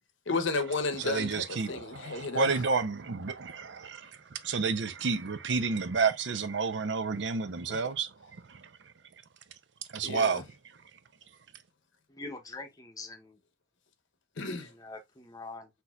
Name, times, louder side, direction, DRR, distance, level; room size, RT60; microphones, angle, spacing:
voice 1, 0.3-2.6 7.7-7.8 10.0-10.4 14.4-14.7, left 3 dB, 75° left, 0.8 m, -33 dB
voice 2, 1.0-8.1 8.5-8.6 9.9-10.4, right 4 dB, 65° right, 0.6 m, -30 dB
voice 3, 12.1-13.4 14.8-15.7, left 3 dB, 20° left, 0.8 m, -43 dB
6.0 x 2.8 x 2.3 m
head